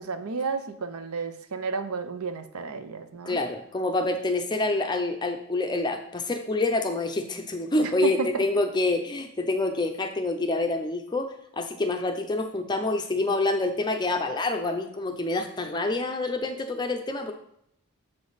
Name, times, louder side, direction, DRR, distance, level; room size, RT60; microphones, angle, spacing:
voice 1, 0.0-3.4 7.8-8.4, right 4 dB, 80° right, 9 dB, 0.7 m, -32 dB
voice 2, 3.3-11.3 11.5-17.3, left 2 dB, 20° left, 5 dB, 0.5 m, -27 dB
7.1 x 5.2 x 4.0 m, 0.74 s
head